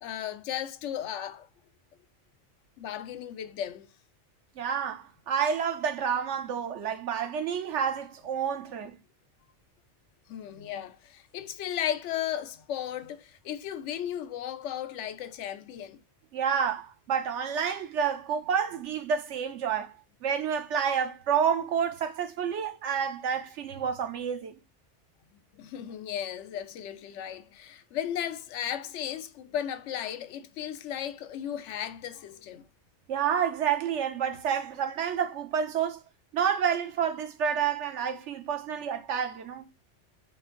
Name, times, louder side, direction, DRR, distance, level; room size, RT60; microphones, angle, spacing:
voice 1, 0.0-1.5 2.8-3.9 10.3-16.0 25.6-32.7, left 10 dB, 85° left, 0.9 m, -35 dB
voice 2, 4.6-8.9 16.3-19.9 20.2-24.5 33.1-36.0 36.3-39.7, right 7 dB, 80° right, 1.1 m, -29 dB
5.3 x 2.6 x 3.7 m
omnidirectional pair, 1.2 m